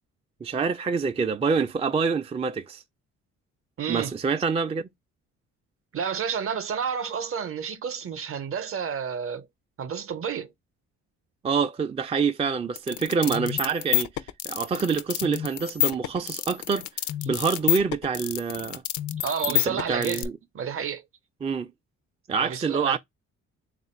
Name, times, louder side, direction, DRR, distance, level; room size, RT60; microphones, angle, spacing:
voice 1, 0.4-2.8 3.9-4.9 11.4-16.9 17.3-18.8 19.5-20.4 21.4-21.7 22.3-23.0, right 5 dB, 20° right, 0.4 m, -26 dB
voice 2, 3.8-4.1 5.9-9.5 9.8-10.5 19.2-20.3 20.5-21.0 22.3-23.0, right 7 dB, 45° right, 0.7 m, -30 dB
sound 1, 12.8-20.3, left 15 dB, 75° left, 0.5 m, -28 dB
3.5 x 2.4 x 4.3 m
cardioid pair, 90°, 30 cm